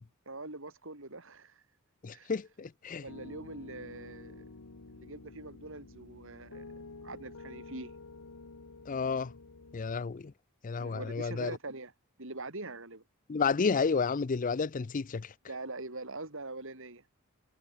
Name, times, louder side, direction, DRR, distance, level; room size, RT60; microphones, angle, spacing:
voice 1, 0.3-1.6 2.1-2.3 3.0-4.5 4.9-6.7 7.0-7.9 10.8-11.9 12.2-13.0 15.5-17.0, right 2 dB, 60° right, 4.6 m, -43 dB
voice 2, 2.0-3.0 8.9-9.3 9.7-10.3 10.6-11.5 13.3-15.3, left 5 dB, 35° left, 0.4 m, -31 dB
Piano, 3.1-10.0, left 3 dB, 80° left, 1.2 m, -50 dB
head